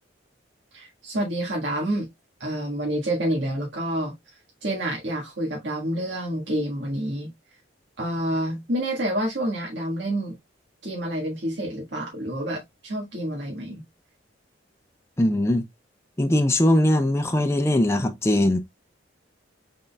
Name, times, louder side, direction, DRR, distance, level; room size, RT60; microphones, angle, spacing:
voice 1, 0.7-2.1 2.4-4.3 4.6-7.3 8.0-10.4 10.8-13.8, right 1 dB, 65° right, 1.5 m, -28 dB
voice 2, 15.2-15.6 16.2-18.6, left 1 dB, 15° left, 0.5 m, -20 dB
6.1 x 3.8 x 2.2 m
head